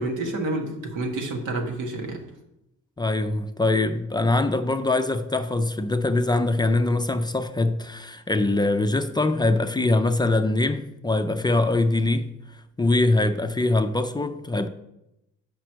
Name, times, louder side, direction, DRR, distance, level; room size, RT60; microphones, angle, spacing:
voice 1, 0.0-2.2, right 2 dB, 85° right, 1.4 m, -29 dB
voice 2, 3.0-12.3 12.8-14.7, left 2 dB, 15° left, 0.4 m, -23 dB
7.6 x 5.1 x 4.5 m
cardioid pair, 90°, 30 cm